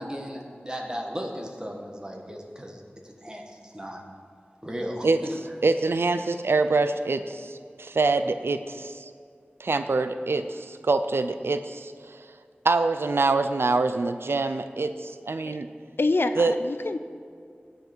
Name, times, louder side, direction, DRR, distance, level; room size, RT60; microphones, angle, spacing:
voice 1, 0.0-4.0 4.6-5.4, equal, 20° right, 1 dB, 1.7 m, -36 dB
voice 2, 5.6-9.1 9.6-12.3 12.6-15.7 16.4-16.5, right 3 dB, 90° right, 9 dB, 0.4 m, -25 dB
voice 3, 16.0-17.0, left 2 dB, 75° left, 10 dB, 0.5 m, -26 dB
17.0 x 5.7 x 4.5 m, 2.2 s
wide cardioid pair, 45°, 4 cm